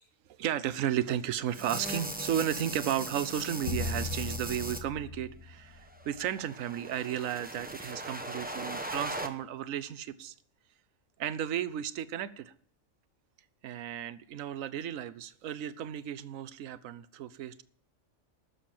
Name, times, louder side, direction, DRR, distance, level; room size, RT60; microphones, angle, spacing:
voice 1, 0.3-10.3 11.2-12.5 13.6-17.6, right 10 dB, 75° right, 15 dB, 1.1 m, -34 dB
sound 1, 1.5-4.8 5.9-9.3, right 1 dB, 10° right, 0.8 m, -39 dB
sound 2, 3.6-6.2, left 3 dB, 75° left, 1.4 m, -37 dB
12.5 x 6.8 x 7.5 m, 0.64 s
omnidirectional pair, 1.4 m